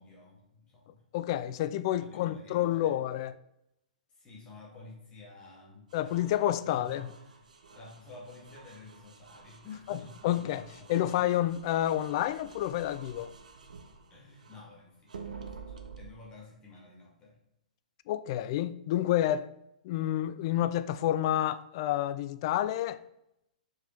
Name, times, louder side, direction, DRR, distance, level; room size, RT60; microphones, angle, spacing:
voice 1, 0.0-1.0 2.0-2.9 4.1-6.2 6.6-11.1 14.1-17.4, left 3 dB, 20° left, 2.2 m, -51 dB
voice 2, 1.1-3.3 5.9-7.1 9.9-10.0 10.2-10.6 10.9-13.3 18.1-19.5 19.8-23.0, left 12 dB, 35° left, 0.3 m, -29 dB
sound 1, 5.9-14.7 15.1-16.1, right 5 dB, 65° right, 0.7 m, -50 dB
6.1 x 5.1 x 4.0 m
figure-of-eight pair, 115°, 4 cm